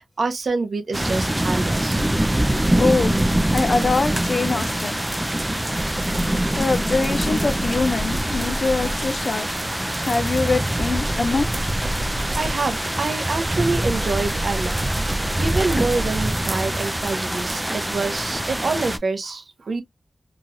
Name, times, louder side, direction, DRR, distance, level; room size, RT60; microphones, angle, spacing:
voice 1, 0.2-2.1 12.4-14.8 15.4-19.8, right 3 dB, 80° right, 0.7 m, -26 dB
sound 1, 0.9-19.0, right 1 dB, 15° right, 0.4 m, -24 dB
sound 2, 2.0-4.4 5.8-9.3 10.8-13.0 13.5-16.6, right 1 dB, 45° right, 0.8 m, -31 dB
voice 2, 2.5-3.2 3.5-5.0 6.6-9.5 10.0-11.5, left 3 dB, 65° left, 0.5 m, -23 dB
3.0 x 2.3 x 2.6 m
wide cardioid pair, 65°, 0 cm